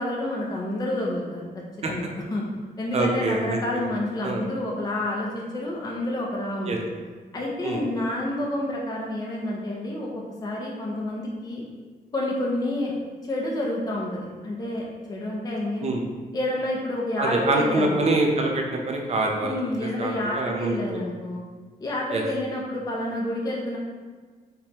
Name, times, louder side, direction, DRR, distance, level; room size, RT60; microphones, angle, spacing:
voice 1, 0.0-1.5 1.9-2.4 2.8-6.7 7.3-10.1 10.4-11.7 12.1-12.9 13.2-15.9 16.3-18.0 19.4-21.4 21.8-23.8, left 1 dB, 25° left, -3 dB, 0.5 m, -29 dB
voice 2, 2.9-3.8 4.2-4.4 6.6-6.8 7.6-7.8 15.8-16.0 17.2-19.5 19.8-21.0 22.1-22.2, right 2 dB, 40° right, 1 dB, 0.6 m, -25 dB
5.1 x 2.9 x 2.9 m, 1.5 s
wide cardioid pair, 175°, 16 cm